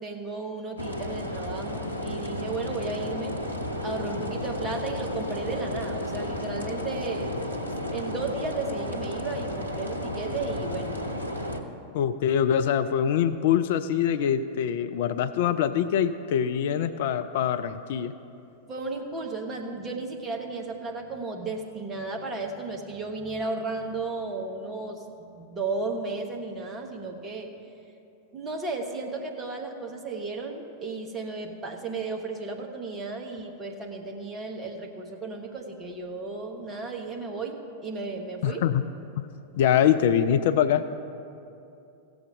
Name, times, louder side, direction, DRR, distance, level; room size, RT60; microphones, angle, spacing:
voice 1, 0.0-3.4 3.8-11.0 18.7-27.5 28.3-38.6, right 3 dB, 20° right, 2 dB, 1.3 m, -34 dB
sound 1, 0.8-11.6, left 1 dB, 85° left, 0.8 m, -33 dB
voice 2, 11.9-18.1 38.4-38.8 39.2-39.3 39.6-40.9, left 9 dB, 55° left, 12 dB, 0.3 m, -24 dB
16.0 x 7.0 x 4.9 m, 2.7 s
figure-of-eight pair, 90°, 0 cm